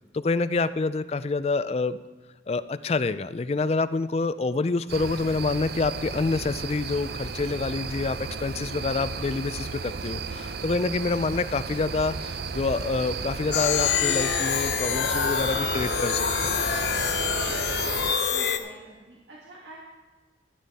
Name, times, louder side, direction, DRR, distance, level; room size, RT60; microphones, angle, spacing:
voice 1, 0.1-2.0 2.5-16.6, left 3 dB, 35° left, 14 dB, 0.3 m, -27 dB
sound 1, 4.9-18.2, right 4 dB, 55° right, 0.6 m, -34 dB
sound 2, 13.5-18.6, left 7 dB, 65° left, 0.8 m, -26 dB
voice 2, 18.3-19.8, right 1 dB, 75° right, -4 dB, 1.7 m, -47 dB
13.5 x 9.2 x 4.1 m, 1.3 s
head